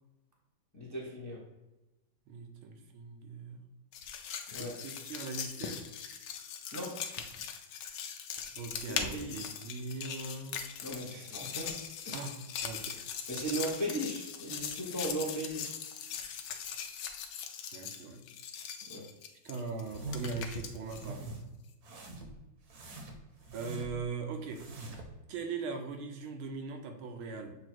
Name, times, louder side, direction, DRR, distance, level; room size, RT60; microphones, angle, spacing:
voice 1, 0.7-1.5 4.5-4.8 6.7-7.0 8.9-9.5 10.8-11.8 12.0-12.2 13.3-15.8 18.9-19.1, right 1 dB, 15° left, -3 dB, 0.7 m, -37 dB
voice 2, 2.3-3.6 4.6-5.8 8.6-10.6 12.1-13.0 17.7-18.2 19.4-21.2 23.5-24.6 25.3-27.6, right 4 dB, 80° right, 4 dB, 1.6 m, -40 dB
sound 1, 3.9-21.1, left 7 dB, 75° left, 1.4 m, -40 dB
sound 2, 19.9-20.5 20.8-21.4 21.8-22.4 22.7-24.0 24.4-25.1, right 2 dB, 55° right, 1.3 m, -43 dB
7.4 x 2.8 x 4.5 m, 1.0 s
omnidirectional pair, 2.3 m